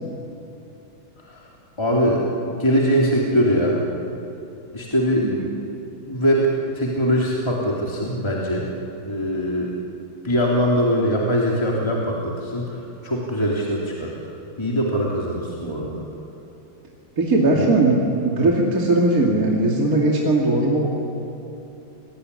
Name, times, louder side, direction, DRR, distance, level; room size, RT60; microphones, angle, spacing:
voice 1, 1.8-3.8 4.7-5.3 6.1-6.5 6.7-8.7 9.0-9.7 10.2-14.2 14.6-16.0 17.5-17.7, equal, 10° left, -3 dB, 3.2 m, -22 dB
voice 2, 5.2-5.5 17.2-20.9, right 2 dB, 40° right, -2 dB, 3.3 m, -19 dB
29.0 x 20.5 x 9.9 m, 2.9 s
omnidirectional pair, 2.3 m